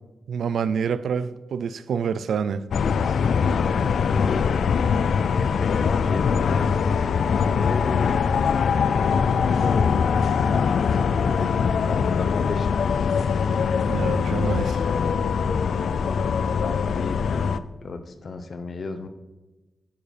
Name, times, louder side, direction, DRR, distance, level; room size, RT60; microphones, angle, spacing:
voice 1, 0.3-2.6 13.8-14.8, right 6 dB, 85° right, 0.4 m, -27 dB
sound 1, 2.7-17.6, left 6 dB, 80° left, 0.3 m, -22 dB
voice 2, 3.0-4.7 5.4-7.0 7.6-8.2 9.1-13.7 14.8-15.3 15.8-17.5 17.8-19.1, left 3 dB, 45° left, 0.7 m, -34 dB
10.5 x 5.1 x 4.9 m
wide cardioid pair, 150°, 0 cm